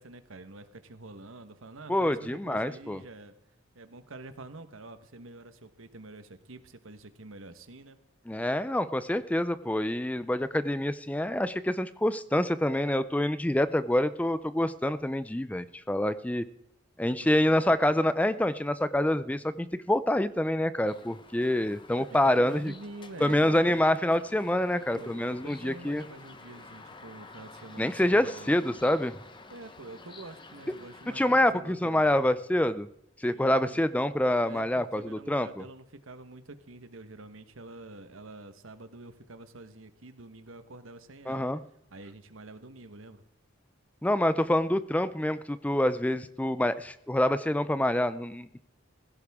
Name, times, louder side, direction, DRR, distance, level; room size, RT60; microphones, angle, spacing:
voice 1, 0.0-3.3 3.7-8.0 17.2-17.6 22.0-23.7 24.5-28.9 29.5-32.1 33.3-33.8 34.4-41.5 41.9-43.2, right 2 dB, 85° right, 9 dB, 1.3 m, -47 dB
voice 2, 1.9-3.0 8.3-16.4 17.0-22.7 23.2-26.0 27.8-29.1 31.1-32.9 33.2-35.6 41.3-41.6 44.0-48.6, left 1 dB, 5° left, 13 dB, 0.4 m, -26 dB
sound 1, 20.9-31.4, left 3 dB, 25° left, 0.9 m, -50 dB
16.5 x 16.0 x 3.6 m, 0.78 s
head